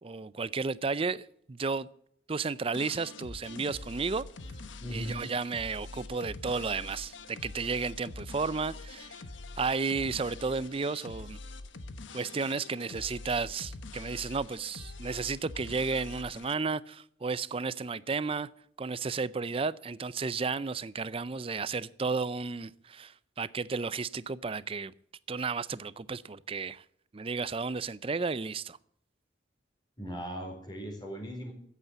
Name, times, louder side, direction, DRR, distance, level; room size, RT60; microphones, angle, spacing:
voice 1, 0.0-1.9 2.3-4.3 4.9-9.2 9.6-11.4 12.1-18.5 18.8-24.9 25.3-26.8 27.1-28.8, right 4 dB, 30° right, 0.5 m, -33 dB
sound 1, 2.7-16.5, left 3 dB, 85° left, 1.1 m, -44 dB
voice 2, 4.8-5.3 30.0-31.5, equal, 25° left, 4.3 m, -38 dB
14.5 x 8.3 x 8.1 m
head